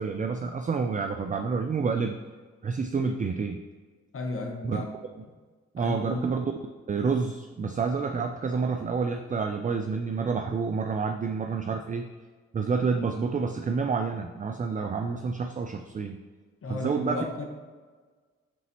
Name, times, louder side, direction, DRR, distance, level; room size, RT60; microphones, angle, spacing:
voice 1, 0.0-2.2 2.6-3.6 4.6-4.8 5.7-6.5 6.9-12.1 12.5-16.2 16.7-17.2, right 5 dB, 25° right, 6 dB, 0.4 m, -28 dB
voice 2, 4.1-4.9 5.8-6.3 16.6-17.5, left 2 dB, 45° left, 2 dB, 1.2 m, -33 dB
9.0 x 4.0 x 3.0 m, 1.4 s
supercardioid pair, 50°, 30 cm